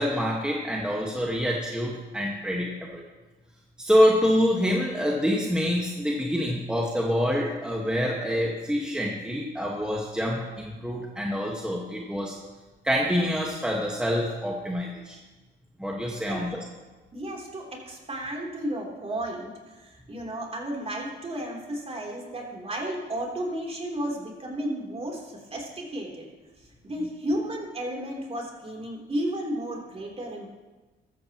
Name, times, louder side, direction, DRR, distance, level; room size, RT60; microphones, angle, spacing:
voice 1, 0.0-3.0 3.8-12.3 12.8-15.2 15.8-16.6, equal, 5° right, -2 dB, 1.6 m, -26 dB
voice 2, 17.1-26.3 26.6-30.5, right 1 dB, 30° right, -1 dB, 3.4 m, -33 dB
15.0 x 13.5 x 3.0 m, 1.2 s
cardioid pair, 90°, 20 cm